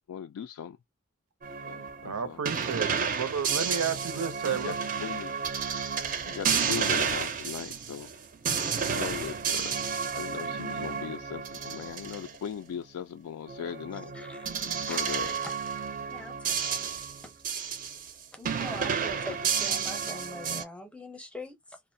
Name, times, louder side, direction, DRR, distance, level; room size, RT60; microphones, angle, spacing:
voice 1, 0.1-0.8 1.6-2.4 4.2-5.3 6.2-8.1 8.8-9.8 10.1-14.1 14.8-15.3, left 8 dB, 90° left, 0.3 m, -38 dB
sound 1, 1.4-12.4 13.5-18.1 18.4-20.6, right 6 dB, 40° right, 0.4 m, -31 dB
voice 2, 2.0-4.8, right 6 dB, 90° right, 0.5 m, -32 dB
voice 3, 14.1-14.5 14.9-15.0 15.2-15.4 16.1-16.9 17.2-17.3 18.3-21.8, left 1 dB, 5° left, 0.6 m, -43 dB
2.4 x 2.0 x 2.6 m
head